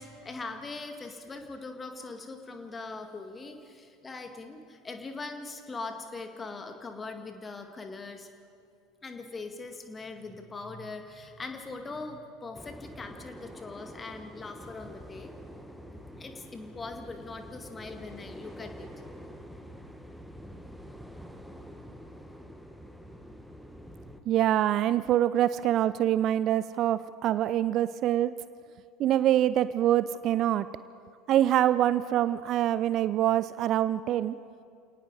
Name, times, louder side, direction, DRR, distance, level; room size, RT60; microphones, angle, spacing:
voice 1, 0.0-8.3 9.0-15.3 16.2-18.9, left 3 dB, 20° left, 5 dB, 2.1 m, -41 dB
sound 1, 12.5-24.2, equal, ahead, 1.5 m, -46 dB
voice 2, 24.3-28.3 29.0-30.7 31.3-34.3, right 12 dB, 40° right, 16 dB, 0.4 m, -25 dB
29.0 x 18.5 x 4.9 m, 2.4 s
figure-of-eight pair, 75°, 0 cm